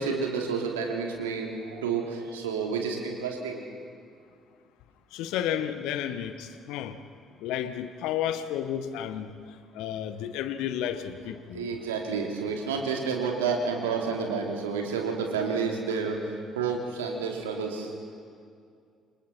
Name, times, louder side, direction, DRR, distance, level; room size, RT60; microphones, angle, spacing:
voice 1, 0.0-3.6 11.5-17.9, right 5 dB, 80° right, 1 dB, 2.7 m, -30 dB
voice 2, 5.1-7.0 7.4-9.3 9.7-11.8, left 10 dB, 65° left, 11 dB, 1.1 m, -32 dB
28.0 x 25.0 x 4.3 m, 2.3 s
figure-of-eight pair, 45°, 0 cm